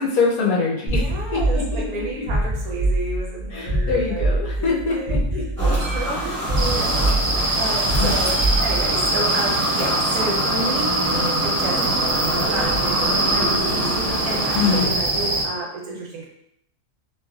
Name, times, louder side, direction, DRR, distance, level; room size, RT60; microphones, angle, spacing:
voice 1, 0.0-2.2 3.5-5.5 6.2-6.4 7.5-7.6 8.0-8.1 14.5-15.0, left 4 dB, 70° left, -3 dB, 1.1 m, -24 dB
voice 2, 0.8-5.1 5.6-8.3 8.6-12.0 12.5-16.3, right 2 dB, 70° right, -2 dB, 1.2 m, -31 dB
sound 1, 0.9-9.1, right 1 dB, 25° left, 0.8 m, -24 dB
sound 2, 5.6-14.8, equal, 20° right, 0.4 m, -26 dB
sound 3, 6.6-15.4, right 2 dB, 85° right, 0.4 m, -23 dB
3.1 x 2.9 x 2.3 m, 0.74 s
omnidirectional pair, 1.7 m